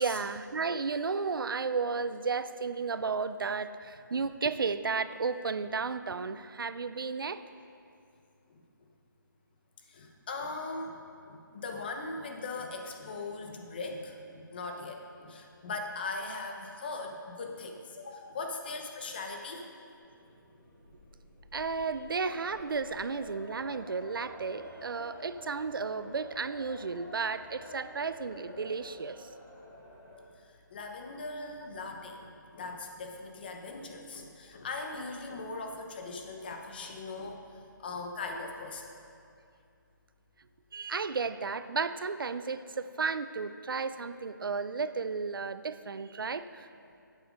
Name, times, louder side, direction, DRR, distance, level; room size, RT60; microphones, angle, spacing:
voice 1, 0.0-7.4 21.5-29.3 40.7-46.7, right 4 dB, 85° right, 13 dB, 0.5 m, -33 dB
voice 2, 9.9-19.6 30.7-38.9, left 3 dB, 25° left, 3 dB, 0.9 m, -40 dB
sound 1, 19.9-30.2, left 1 dB, 10° left, 2.8 m, -50 dB
10.0 x 8.3 x 5.1 m, 2.5 s
hypercardioid pair, 170°, 11 cm